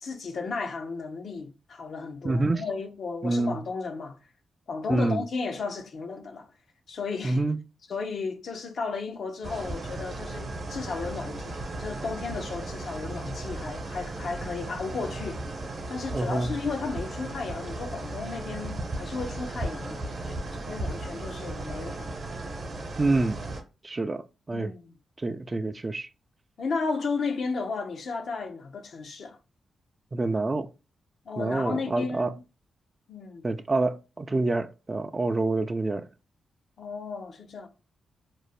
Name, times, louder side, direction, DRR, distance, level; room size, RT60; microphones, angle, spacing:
voice 1, 0.0-4.2 4.7-6.5 6.9-7.4 7.9-11.5 11.8-15.4 15.9-22.1 24.5-24.9 26.6-29.4 31.3-32.4 33.1-33.4 36.8-37.7, left 4 dB, 65° left, 0.5 m, -34 dB
voice 2, 2.2-2.6 3.2-3.6 4.9-5.2 7.2-7.6 16.1-16.5 23.0-23.4 23.8-24.7 25.2-26.1 30.1-30.7 31.4-32.3 33.4-36.1, right 2 dB, 35° right, 0.3 m, -27 dB
sound 1, 9.4-23.6, right 2 dB, 60° right, 0.8 m, -36 dB
2.5 x 2.0 x 3.2 m
supercardioid pair, 55°, 0 cm